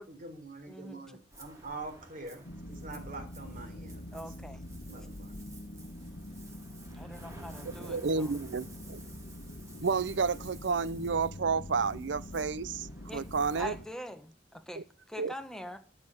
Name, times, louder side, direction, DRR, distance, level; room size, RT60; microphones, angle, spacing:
voice 1, 0.1-4.2 4.9-5.4, right 3 dB, 45° right, 3.9 m, -45 dB
voice 2, 0.7-1.0 4.1-4.7 6.9-8.3 13.1-13.2 13.6-15.8, equal, 5° left, 1.2 m, -43 dB
Ocean, 1.3-13.8, right 2 dB, 15° right, 2.4 m, -53 dB
sound 1, 2.4-13.9, left 1 dB, 65° left, 1.3 m, -45 dB
voice 3, 7.8-9.0 9.8-13.7 14.8-14.9 15.2-15.3, right 5 dB, 75° right, 0.6 m, -31 dB
12.5 x 6.7 x 7.9 m
head